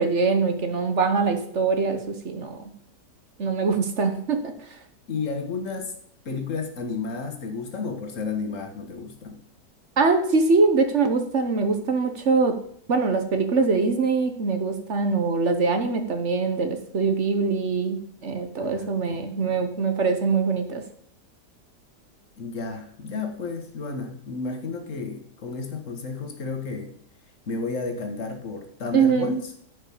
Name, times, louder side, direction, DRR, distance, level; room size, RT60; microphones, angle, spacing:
voice 1, 0.0-2.6 3.4-4.5 10.0-12.6 12.9-20.8 28.9-29.3, right 4 dB, 45° right, 7 dB, 1.2 m, -23 dB
voice 2, 5.1-6.0 6.3-9.4 18.6-19.7 22.4-26.9 27.5-29.5, left 4 dB, 50° left, 5 dB, 1.8 m, -32 dB
9.7 x 5.4 x 7.2 m, 0.63 s
omnidirectional pair, 1.8 m